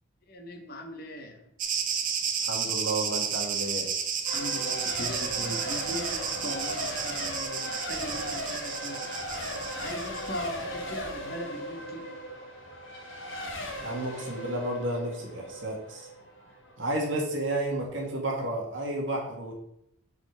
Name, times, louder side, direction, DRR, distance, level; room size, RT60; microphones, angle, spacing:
voice 1, 0.3-1.5 4.3-9.1 9.5-12.1, left 1 dB, 45° left, 4 dB, 1.0 m, -39 dB
sound 1, 1.6-10.5, right 7 dB, 40° right, 0.7 m, -32 dB
voice 2, 2.4-3.9 13.8-16.1 16.8-19.5, right 1 dB, 60° right, -1 dB, 1.7 m, -31 dB
Race car auto racing / Accelerating revving vroom / Mechanisms, 4.3-16.8, equal, 60° left, 1.4 m, -37 dB
4.8 x 4.1 x 5.8 m, 0.78 s
head